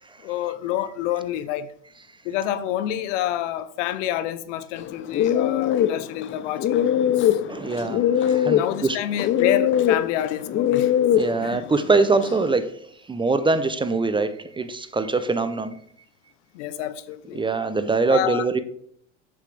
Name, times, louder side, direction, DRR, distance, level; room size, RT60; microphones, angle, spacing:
voice 1, 0.2-1.7 2.2-7.4 8.5-10.9 11.4-11.6 16.5-17.4 18.1-18.5, left 12 dB, 75° left, 0.8 m, -28 dB
sound 1, 4.8-12.5, left 10 dB, 30° left, 0.6 m, -22 dB
voice 2, 7.5-9.0 11.1-12.8 13.1-15.8 17.3-18.6, right 3 dB, 15° right, 0.5 m, -23 dB
7.3 x 7.0 x 3.3 m
hypercardioid pair, 95°, 37 cm